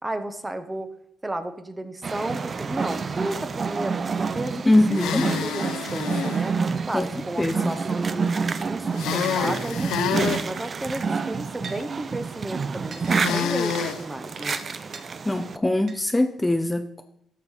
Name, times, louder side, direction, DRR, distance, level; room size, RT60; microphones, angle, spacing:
voice 1, 0.0-0.9 1.2-6.6 6.9-8.2 8.7-14.6, right 1 dB, 15° right, 10 dB, 1.1 m, -33 dB
Local drummer, 2.0-15.6, right 5 dB, 40° right, 0.6 m, -28 dB
voice 2, 4.6-5.3 6.9-7.1 7.4-7.8 15.2-17.0, left 1 dB, 10° left, 7 dB, 0.6 m, -22 dB
sound 1, 4.9-6.4 8.9-10.4 13.1-14.0, left 8 dB, 85° left, 0.8 m, -27 dB
sound 2, 11.6-11.8 12.9-13.5 14.4-15.0 15.9-16.0, right 5 dB, 60° right, 1.5 m, -39 dB
12.0 x 6.5 x 5.6 m, 0.75 s
cardioid pair, 90°, 0 cm